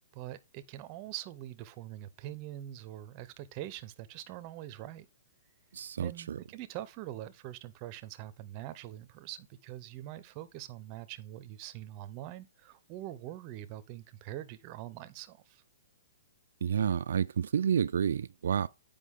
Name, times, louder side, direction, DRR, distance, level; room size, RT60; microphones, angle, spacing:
voice 1, 0.1-5.1 6.0-15.6, right 13 dB, 30° right, 0.7 m, -44 dB
voice 2, 5.7-6.4 16.6-18.7, right 8 dB, 75° right, 0.3 m, -29 dB
8.3 x 5.2 x 3.6 m
hypercardioid pair, 165°, 0 cm